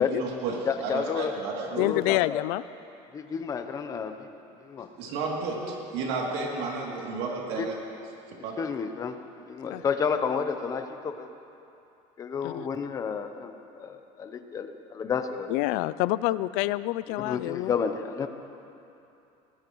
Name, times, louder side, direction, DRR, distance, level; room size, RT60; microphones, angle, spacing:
voice 1, 0.0-2.0 5.0-7.7 8.3-8.6, right 4 dB, 85° right, -2 dB, 2.8 m, -32 dB
voice 2, 0.7-1.3 1.7-2.4 3.1-4.3 4.6-4.9 7.6-7.7 8.6-9.2 9.5-11.3 12.2-15.5 17.2-18.3, left 6 dB, 25° left, 8 dB, 0.7 m, -31 dB
voice 3, 1.8-2.6 9.7-9.8 12.4-12.6 15.5-17.7, left 18 dB, 75° left, 17 dB, 0.4 m, -27 dB
20.5 x 18.0 x 3.1 m, 2.8 s
cardioid pair, 165°, 14 cm